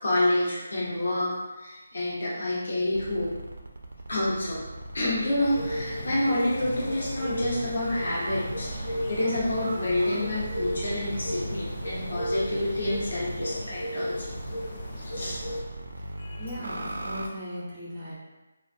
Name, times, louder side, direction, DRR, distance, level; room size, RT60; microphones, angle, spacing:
voice 1, 0.0-1.3 1.6-3.3 4.1-4.6 4.9-14.2 15.1-15.4 16.2-16.5, left 1 dB, 80° left, -6 dB, 0.9 m, -28 dB
sound 1, 2.9-6.0 6.5-13.6 14.2-17.3, right 1 dB, 65° right, 0.4 m, -39 dB
sound 2, 5.4-15.6, equal, 35° left, 0.5 m, -34 dB
voice 2, 16.4-18.1, equal, 15° right, -8 dB, 0.6 m, -38 dB
2.9 x 2.3 x 2.5 m, 1.1 s
hypercardioid pair, 175°, 0 cm